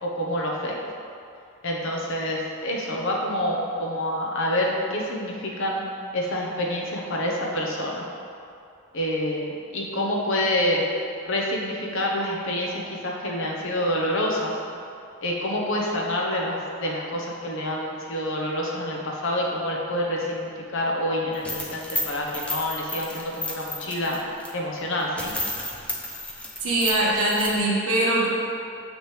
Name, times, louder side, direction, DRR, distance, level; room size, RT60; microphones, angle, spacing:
voice 1, 0.0-0.8 1.6-5.8 6.1-8.0 8.9-10.8 11.2-14.5 15.2-24.2 24.5-25.3, left 1 dB, 60° left, -2 dB, 1.0 m, -27 dB
sound 1, 21.3-24.5 24.9-25.0 25.2-27.6, left 1 dB, 5° left, 0.5 m, -32 dB
voice 2, 26.6-28.3, right 1 dB, 85° right, -5 dB, 1.6 m, -22 dB
7.4 x 6.3 x 3.3 m, 2.5 s
head